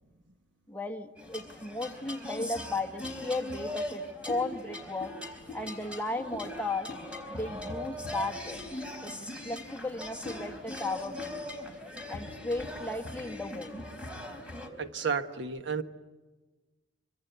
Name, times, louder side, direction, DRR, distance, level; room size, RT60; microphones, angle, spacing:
voice 1, 0.7-5.1 5.5-6.9 7.3-8.7 9.0-9.1 9.4-11.4 12.1-13.8, left 2 dB, 10° left, 4 dB, 1.4 m, -35 dB
sound 1, 1.2-14.7, left 1 dB, 5° right, 4.0 m, -40 dB
voice 2, 14.8-15.8, right 6 dB, 65° right, 9 dB, 1.3 m, -32 dB
26.5 x 25.0 x 8.1 m, 1.2 s
head